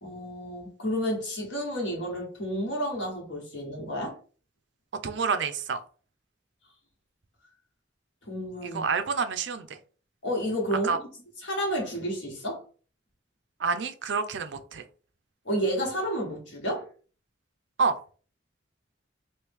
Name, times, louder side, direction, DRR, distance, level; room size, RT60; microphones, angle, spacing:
voice 1, 0.0-4.2 8.2-8.8 10.2-11.0 11.4-12.6 15.4-16.9, equal, 75° left, 1.4 m, -31 dB
voice 2, 5.0-5.8 8.6-9.8 10.8-11.0 13.6-14.8 17.8-18.0, right 5 dB, 70° right, 0.5 m, -28 dB
3.1 x 2.6 x 3.5 m
head